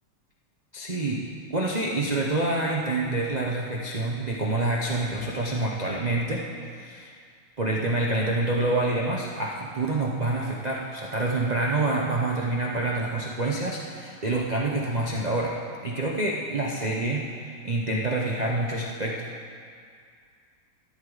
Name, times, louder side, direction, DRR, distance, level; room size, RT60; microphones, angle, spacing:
voice 1, 0.7-1.2 1.5-6.5 6.8-7.1 7.6-15.6 15.8-19.2, right 2 dB, 80° right, -3 dB, 0.3 m, -27 dB
13.5 x 11.0 x 4.0 m, 2.2 s
omnidirectional pair, 2.3 m